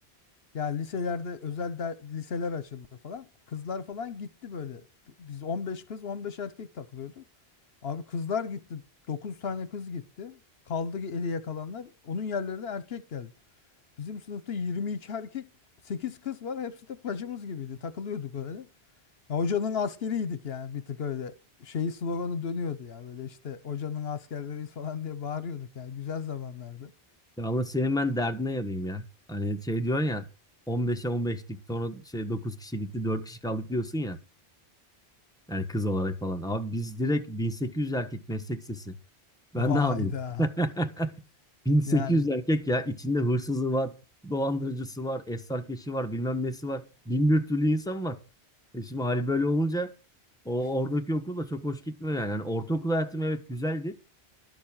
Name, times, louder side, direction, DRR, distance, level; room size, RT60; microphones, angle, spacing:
voice 1, 0.5-4.8 5.2-7.2 7.8-8.8 9.1-10.4 10.7-13.3 14.0-15.5 15.8-18.7 19.3-21.3 21.6-26.9 39.5-40.5 41.9-42.2, left 6 dB, 70° left, 1.1 m, -34 dB
voice 2, 27.4-29.0 29.3-30.2 30.7-34.2 35.5-38.9 39.5-40.1 40.4-41.1 41.6-43.9 44.2-48.2 48.7-49.9 50.4-54.0, equal, 5° left, 1.2 m, -28 dB
12.0 x 7.3 x 7.3 m
omnidirectional pair, 1.1 m